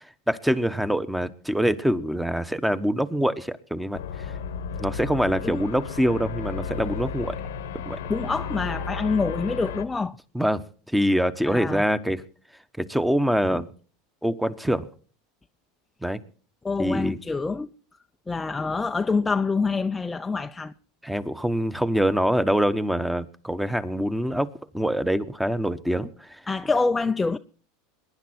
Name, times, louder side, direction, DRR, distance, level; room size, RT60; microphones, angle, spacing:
voice 1, 0.3-4.0 4.8-7.4 7.8-8.0 10.3-10.6 10.9-12.2 12.8-13.7 14.2-14.9 16.0-16.2 16.8-17.2 21.0-26.3, equal, 5° right, 1.1 m, -24 dB
sound 1, 3.9-9.8, left 6 dB, 85° left, 1.3 m, -33 dB
voice 2, 8.1-10.1 11.5-11.8 16.6-17.7 18.3-20.7 26.5-27.4, left 4 dB, 15° left, 0.6 m, -26 dB
22.0 x 10.5 x 4.4 m
hypercardioid pair, 105°, 0 cm